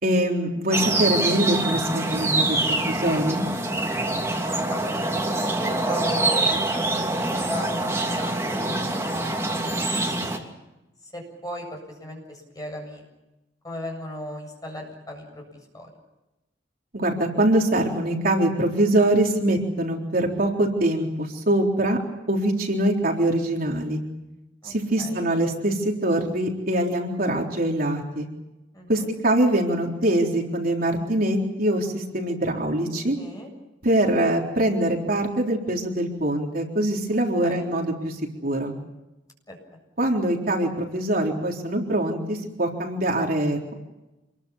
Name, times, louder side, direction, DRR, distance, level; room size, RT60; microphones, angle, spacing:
voice 1, 0.0-3.4 16.9-22.0 22.3-24.0 24.6-28.3 28.9-33.2 33.8-38.7 40.0-43.7, right 1 dB, 50° right, 0 dB, 3.8 m, -23 dB
sound 1, 0.7-10.4, right 2 dB, 15° right, 2.9 m, -25 dB
voice 2, 4.7-10.3 11.0-13.0 13.6-15.9 24.6-25.3 28.7-29.1 33.2-33.5 37.4-37.7 39.5-39.6, equal, 20° left, 2 dB, 7.7 m, -37 dB
27.5 x 22.0 x 7.3 m, 0.99 s
head